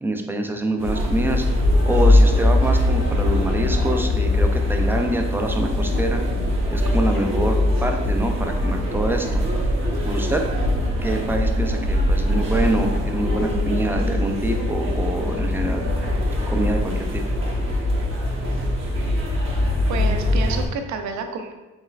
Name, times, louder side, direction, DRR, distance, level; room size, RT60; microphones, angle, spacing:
voice 1, 0.0-1.4 1.9-6.2 6.7-9.4 10.1-10.4 11.0-15.9 16.5-17.2, right 1 dB, 5° right, 3 dB, 0.4 m, -25 dB
sound 1, 0.8-20.7, left 1 dB, 40° right, 1.1 m, -21 dB
voice 2, 19.9-21.5, right 4 dB, 70° right, 6 dB, 0.6 m, -29 dB
4.2 x 3.4 x 2.4 m, 1.1 s
cardioid pair, 90°, 30 cm